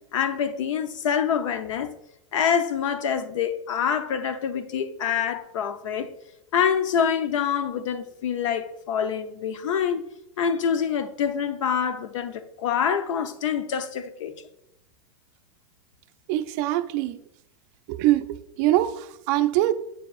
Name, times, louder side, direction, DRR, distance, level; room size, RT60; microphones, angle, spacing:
voice 1, 0.1-1.9 2.3-6.1 6.5-10.0 10.4-14.3, left 7 dB, 75° left, 0.6 m, -26 dB
voice 2, 16.3-17.2 17.9-18.3 18.6-19.7, right 15 dB, 35° right, 0.4 m, -23 dB
8.8 x 4.5 x 2.4 m
supercardioid pair, 160°, 16 cm